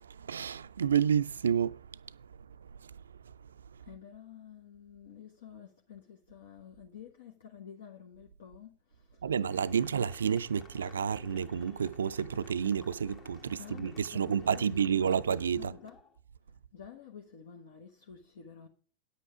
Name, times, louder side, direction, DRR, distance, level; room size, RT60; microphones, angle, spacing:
voice 1, 0.2-1.8 9.2-15.7, right 7 dB, 70° right, 0.4 m, -30 dB
voice 2, 3.8-9.3 9.7-10.0 13.5-16.0 16.5-18.7, left 8 dB, 65° left, 1.2 m, -51 dB
sound 1, 9.4-16.2, left 6 dB, 30° left, 1.3 m, -54 dB
9.8 x 8.3 x 4.9 m
figure-of-eight pair, 85°, 0 cm